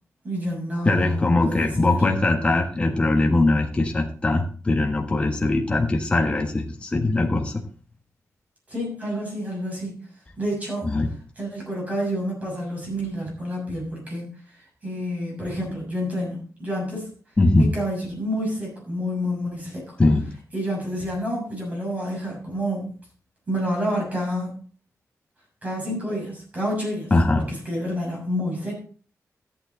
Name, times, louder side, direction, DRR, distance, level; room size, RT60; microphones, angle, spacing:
voice 1, 0.2-2.0 8.7-10.0 10.4-10.9 11.4-17.1 17.6-20.0 20.5-22.9 23.5-24.5 25.6-28.8, equal, 25° right, -2 dB, 6.5 m, -29 dB
voice 2, 0.8-7.6 10.8-11.1 17.4-17.7 20.0-20.3 27.1-27.5, left 2 dB, 20° left, 1 dB, 1.5 m, -21 dB
13.0 x 9.2 x 3.9 m, 0.40 s
wide cardioid pair, 175°, 6 cm